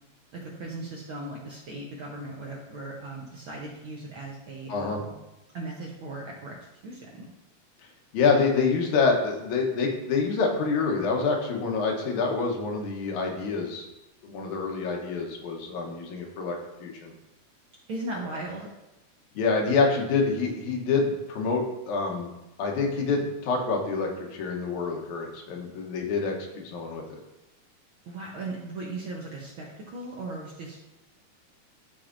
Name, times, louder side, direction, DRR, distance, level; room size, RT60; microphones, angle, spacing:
voice 1, 0.3-5.1 5.5-7.3 17.9-18.7 28.1-30.8, right 2 dB, 65° right, -3 dB, 1.3 m, -38 dB
voice 2, 4.7-5.0 8.1-13.9 14.2-17.1 19.4-22.3 22.6-27.2, left 4 dB, 85° left, 1 dB, 2.5 m, -27 dB
12.0 x 4.4 x 2.5 m, 0.97 s
omnidirectional pair, 3.3 m